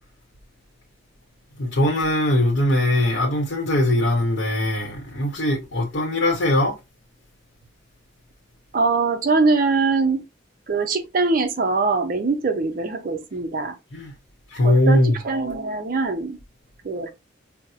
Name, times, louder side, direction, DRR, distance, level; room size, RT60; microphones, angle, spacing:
voice 1, 1.6-6.8 13.9-14.1 14.5-15.2, left 1 dB, 60° left, 0.8 m, -20 dB
voice 2, 8.7-10.2 10.7-13.7 14.6-15.0 15.2-16.4 16.8-17.1, right 3 dB, 45° right, 0.5 m, -22 dB
4.1 x 2.0 x 2.4 m
head